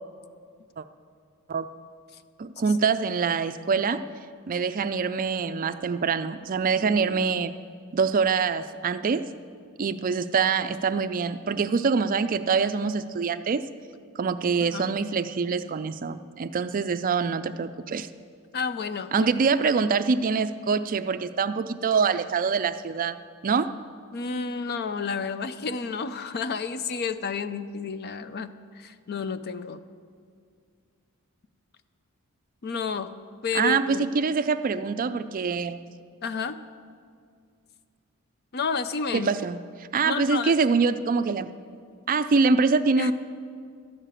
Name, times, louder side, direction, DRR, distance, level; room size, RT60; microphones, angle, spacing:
voice 1, 2.4-4.0 4.5-7.5 7.9-9.3 9.8-13.6 14.2-18.1 19.1-23.2 23.4-23.7 33.5-35.8 39.1-39.6 39.9-41.5 42.1-43.1, right 5 dB, 40° right, 12 dB, 0.4 m, -25 dB
voice 2, 18.5-19.3 24.1-29.8 32.6-33.1 33.4-34.1 36.2-36.6 38.5-39.3 40.0-40.6 43.0-43.1, left 5 dB, 50° left, 12 dB, 0.5 m, -31 dB
13.0 x 6.6 x 8.8 m, 2.2 s
head